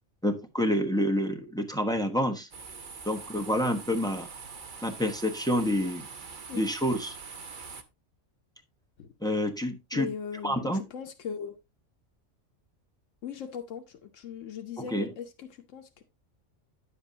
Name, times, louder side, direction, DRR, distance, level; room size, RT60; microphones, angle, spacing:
voice 1, 0.2-2.5 3.0-4.3 4.8-6.1 6.5-7.1 9.2-10.1 10.4-10.8 14.8-15.1, equal, 5° left, 1.0 m, -28 dB
sound 1, 2.5-7.8, right 5 dB, 45° right, 1.0 m, -44 dB
voice 2, 9.9-11.6 13.2-16.0, left 7 dB, 80° left, 1.2 m, -39 dB
9.8 x 7.9 x 2.7 m
omnidirectional pair, 1.3 m